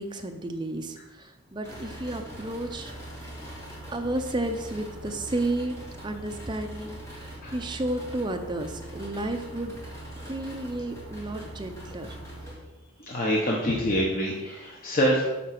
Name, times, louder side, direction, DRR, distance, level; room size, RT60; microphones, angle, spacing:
voice 1, 0.0-2.9 3.9-9.8 10.2-12.1, right 1 dB, 20° right, 5 dB, 0.6 m, -32 dB
sound 1, 1.6-12.5, right 1 dB, 15° left, 1.9 m, -41 dB
voice 2, 13.0-15.2, equal, 40° left, -3 dB, 1.0 m, -25 dB
8.4 x 4.0 x 5.9 m, 1.1 s
head